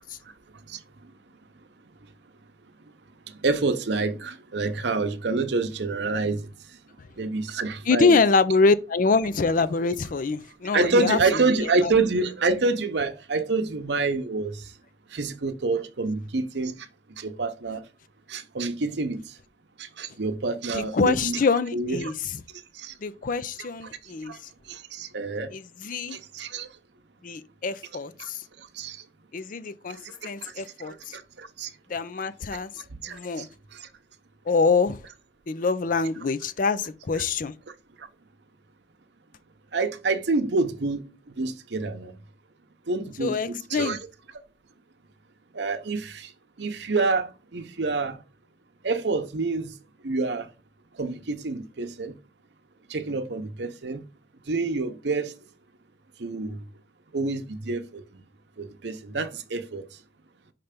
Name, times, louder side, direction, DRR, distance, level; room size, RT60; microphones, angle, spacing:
voice 1, 3.4-6.5 7.2-8.1 10.7-14.5 15.1-16.7 17.2-17.8 18.3-19.2 20.0-21.4 21.7-22.1 22.8-22.9 25.0-25.5 26.1-26.7 28.8-29.0 30.9-31.0 31.6-31.7 33.0-33.2 39.7-41.0 41.4-42.1 42.9-44.0 45.6-46.2 46.6-47.3 47.5-48.2 48.8-49.7 50.0-50.5 51.0-52.1 52.9-54.0 54.5-55.3 56.2-56.6 57.1-57.8 58.6-59.8, right 3 dB, 70° right, 0.8 m, -27 dB
voice 2, 7.9-11.4 11.8-11.9 20.7-22.1 23.0-24.3 25.5-26.2 27.2-28.4 29.3-30.0 30.2-31.2 31.9-32.7 33.1-33.5 34.5-35.0 35.5-37.5 43.2-44.0, left 4 dB, 50° left, 0.5 m, -25 dB
5.7 x 3.3 x 5.1 m
head